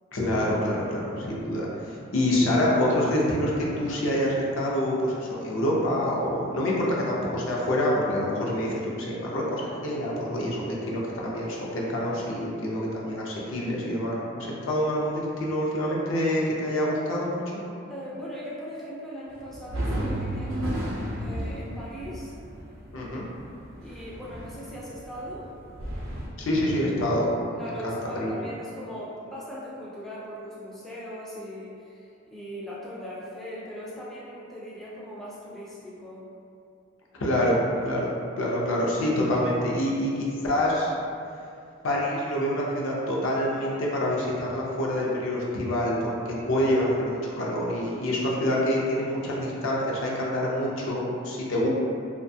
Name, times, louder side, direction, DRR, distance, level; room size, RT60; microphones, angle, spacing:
voice 1, 0.1-17.5 22.9-23.3 26.4-28.3 37.2-38.1 38.4-40.9 41.8-51.7, left 1 dB, 70° left, -4 dB, 0.5 m, -26 dB
voice 2, 17.9-22.3 23.8-25.5 27.6-36.3, equal, ahead, -8 dB, 0.3 m, -39 dB
sound 1, 19.3-26.3, right 1 dB, 70° right, 0.5 m, -34 dB
2.6 x 2.2 x 2.6 m, 2.5 s
head